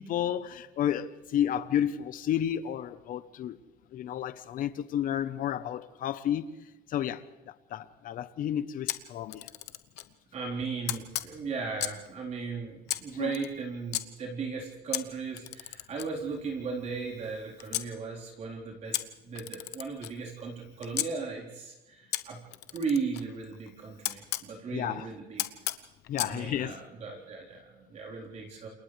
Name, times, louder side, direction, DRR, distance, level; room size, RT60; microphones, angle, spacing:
voice 1, 0.0-3.6 3.9-6.5 6.9-7.2 7.7-9.4 13.1-13.4 24.7-25.1 26.1-26.7, left 10 dB, 55° left, 1.0 m, -31 dB
Camera, 8.9-10.1 10.9-12.1 12.9-14.0 14.9-17.9 18.9-21.1 22.1-24.5 25.4-26.4, left 16 dB, 85° left, 1.0 m, -36 dB
voice 2, 10.3-22.4 22.7-25.5 26.2-28.7, right 5 dB, 40° right, 4.2 m, -36 dB
29.5 x 28.0 x 3.4 m
cardioid pair, 160°, 17 cm